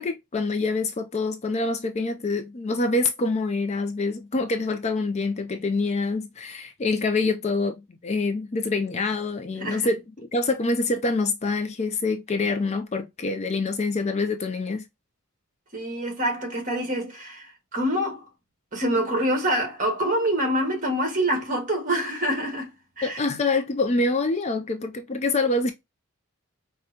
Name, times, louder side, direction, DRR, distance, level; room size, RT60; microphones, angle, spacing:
voice 1, 0.0-10.0 10.3-14.8 23.0-25.7, left 3 dB, 30° left, 0.4 m, -26 dB
voice 2, 9.6-9.9 15.7-18.2 18.7-23.2, right 1 dB, 35° right, 1.6 m, -26 dB
5.0 x 2.2 x 2.7 m
head